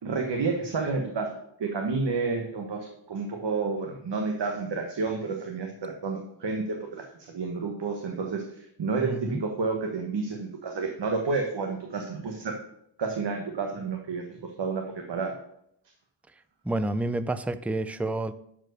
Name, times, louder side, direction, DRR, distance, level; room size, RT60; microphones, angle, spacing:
voice 1, 0.0-1.3 1.6-12.6 13.0-15.3, right 4 dB, 65° right, 2 dB, 1.5 m, -30 dB
voice 2, 9.0-9.4 16.6-18.3, right 2 dB, 5° right, 12 dB, 0.4 m, -29 dB
12.0 x 4.8 x 6.4 m, 0.74 s
wide cardioid pair, 150°, 45 cm